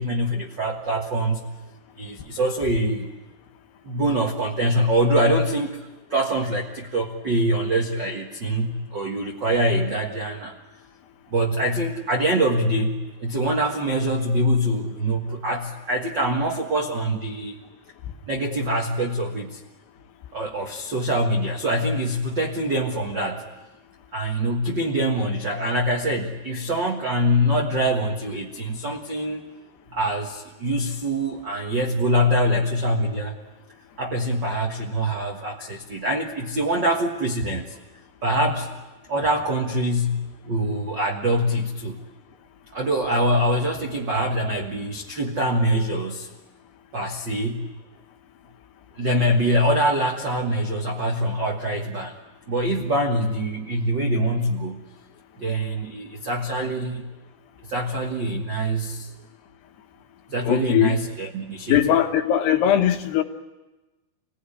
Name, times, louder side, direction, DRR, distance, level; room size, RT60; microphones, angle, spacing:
voice 1, 0.0-1.5 2.0-3.1 3.8-10.5 11.3-17.6 18.3-19.6 20.3-23.5 24.1-29.4 29.9-33.3 34.0-37.8 38.2-38.8 39.1-42.0 42.7-46.3 46.9-47.7 49.0-52.2 52.5-54.9 55.4-57.1 57.7-59.1 60.3-61.8, right 1 dB, 70° right, 1.0 m, -24 dB
voice 2, 60.4-61.0 61.7-63.2, left 11 dB, 75° left, 3.2 m, -20 dB
27.0 x 17.5 x 9.9 m
omnidirectional pair, 4.9 m